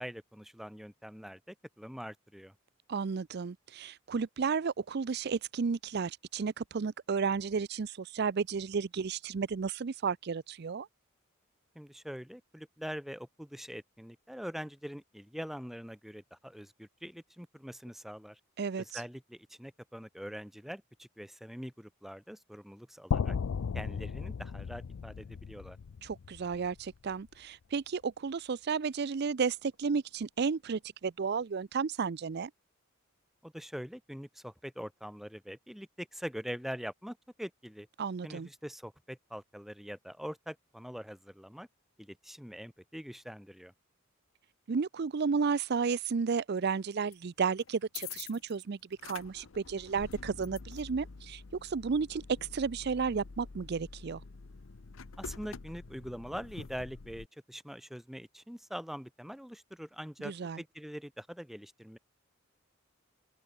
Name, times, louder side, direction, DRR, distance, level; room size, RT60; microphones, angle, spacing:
voice 1, 0.0-2.5 11.7-18.4 18.8-23.4 23.7-25.8 33.4-37.9 38.2-41.7 42.0-43.7 55.2-62.0, equal, ahead, 1.0 m, -43 dB
voice 2, 2.9-10.9 18.6-19.0 26.0-32.5 38.0-38.5 44.7-54.2 60.2-60.6, right 5 dB, 50° right, 0.5 m, -33 dB
sound 1, 23.1-27.1, left 6 dB, 90° left, 0.4 m, -35 dB
sound 2, 47.1-47.2 47.6-48.6 48.9-57.3, left 5 dB, 70° left, 0.8 m, -47 dB
head